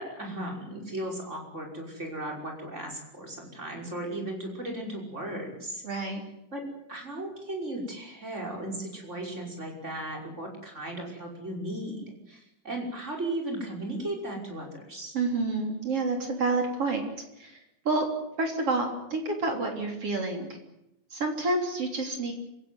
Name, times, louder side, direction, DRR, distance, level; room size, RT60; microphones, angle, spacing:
voice 1, 0.0-5.8 6.5-15.2, right 1 dB, 15° right, 1 dB, 5.6 m, -36 dB
voice 2, 5.8-6.2 15.1-17.0 17.4-17.6 17.9-18.1 18.4-20.5 21.1-22.3, right 3 dB, 35° right, 3 dB, 3.7 m, -28 dB
26.5 x 16.5 x 9.6 m, 0.85 s
omnidirectional pair, 5.6 m